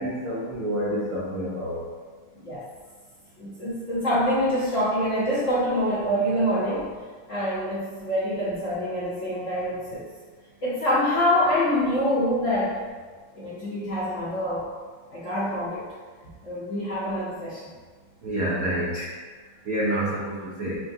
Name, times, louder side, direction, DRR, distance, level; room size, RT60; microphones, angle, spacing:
voice 1, 0.0-1.8 18.2-19.1 19.7-20.8, right 1 dB, 75° right, -6 dB, 0.8 m, -28 dB
voice 2, 3.4-6.9 7.3-10.0 10.6-12.7 13.3-14.6 15.1-15.8 16.4-17.7, equal, 55° left, -11 dB, 0.9 m, -25 dB
5.9 x 2.2 x 2.6 m, 1.5 s
omnidirectional pair, 2.3 m